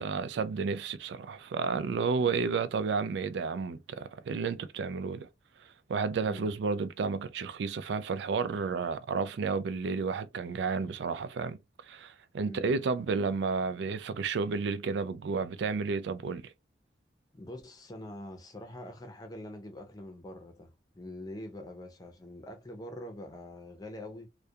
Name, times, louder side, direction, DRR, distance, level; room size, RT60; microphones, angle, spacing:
voice 1, 0.0-5.3 5.9-11.6 11.9-16.4, right 5 dB, 80° right, 0.3 m, -31 dB
voice 2, 17.3-24.3, left 1 dB, 20° left, 0.5 m, -44 dB
2.3 x 2.2 x 2.7 m
head